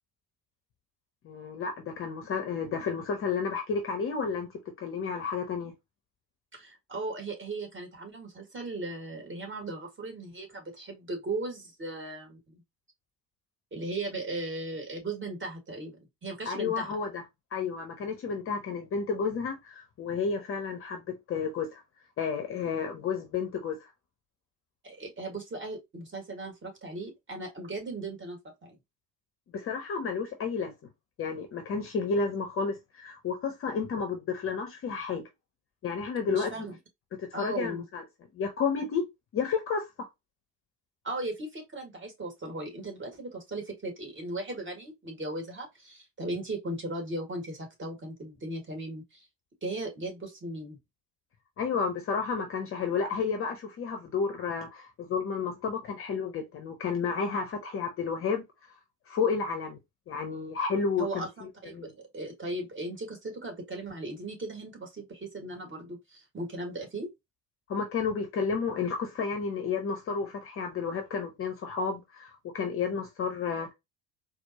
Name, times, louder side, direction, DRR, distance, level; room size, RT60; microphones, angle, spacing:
voice 1, 1.2-4.5 4.8-5.7 16.5-17.2 17.5-21.8 22.2-23.9 29.5-30.7 31.2-35.3 35.8-36.5 37.2-38.0 38.3-39.0 39.3-40.1 51.6-58.4 59.1-59.8 60.1-61.9 67.7-73.7, left 5 dB, 30° left, 0.7 m, -31 dB
voice 2, 6.5-12.6 13.7-17.0 24.8-28.8 36.3-36.8 37.3-37.9 41.0-49.3 49.6-50.8 61.0-67.1, right 2 dB, 25° right, 1.7 m, -37 dB
4.3 x 2.1 x 2.7 m
figure-of-eight pair, 65°, 49 cm